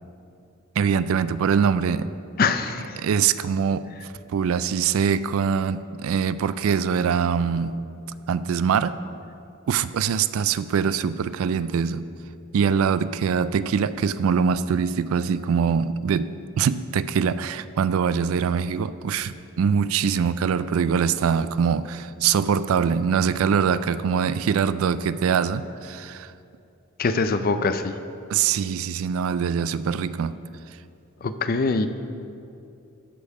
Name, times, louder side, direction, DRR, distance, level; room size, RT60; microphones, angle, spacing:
voice 1, 0.8-2.1 3.0-3.9 4.3-7.8 8.3-9.0 9.7-12.0 12.5-26.3 28.3-30.3, right 7 dB, 70° right, 0.3 m, -23 dB
voice 2, 2.4-3.0 27.0-27.9 31.2-31.9, left 4 dB, 45° left, 0.5 m, -23 dB
13.0 x 5.3 x 4.8 m
head